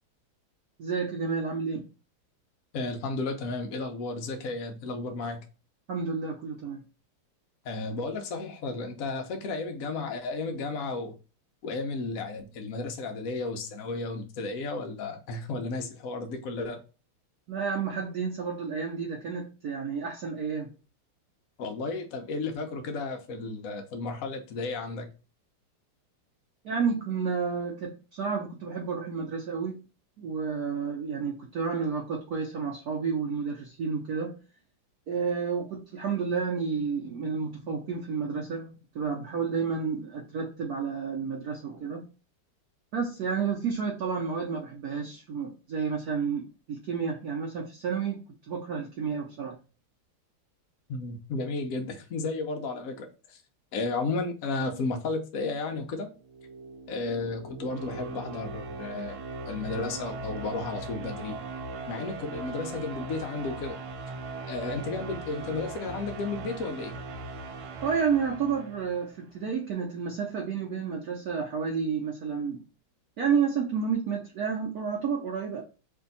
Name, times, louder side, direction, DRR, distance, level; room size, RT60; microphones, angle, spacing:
voice 1, 0.8-1.9 5.9-6.8 17.5-20.7 26.6-29.8 30.2-34.4 35.1-42.1 42.9-48.2 48.5-49.6 67.8-72.6 73.2-75.6, right 6 dB, 70° right, 0.8 m, -30 dB
voice 2, 2.7-5.4 7.6-11.1 11.6-16.8 21.6-25.1 50.9-53.4 53.7-56.1 56.9-59.2 59.5-61.4 61.9-63.8 64.5-66.9, left 3 dB, 75° left, 0.7 m, -33 dB
sound 1, 56.1-69.2, right 3 dB, 90° right, 1.6 m, -39 dB
3.3 x 2.7 x 3.9 m
omnidirectional pair, 2.4 m